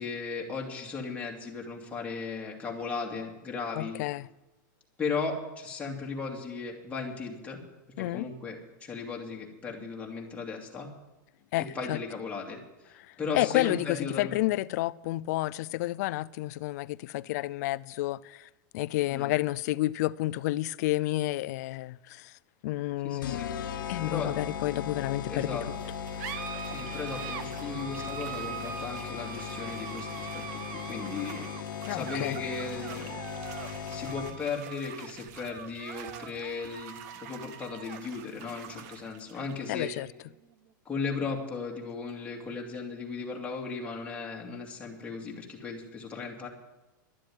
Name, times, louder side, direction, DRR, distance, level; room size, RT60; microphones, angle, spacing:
voice 1, 0.0-4.0 5.0-7.6 8.0-10.9 11.7-12.6 12.8-14.4 19.1-19.3 23.0-24.3 25.3-25.6 26.7-33.2 33.9-39.9 40.8-46.5, left 4 dB, 10° left, 2.4 m, -36 dB
voice 2, 3.7-4.3 8.0-8.3 11.5-12.0 13.1-18.5 18.7-22.3 22.6-23.4 23.9-25.6 31.8-32.4 39.7-40.1, left 17 dB, 55° left, 0.4 m, -30 dB
sound 1, 23.2-34.6, left 7 dB, 80° left, 1.1 m, -38 dB
sound 2, 25.8-42.7, right 8 dB, 50° right, 1.1 m, -43 dB
12.0 x 7.5 x 9.4 m
supercardioid pair, 140°, 11 cm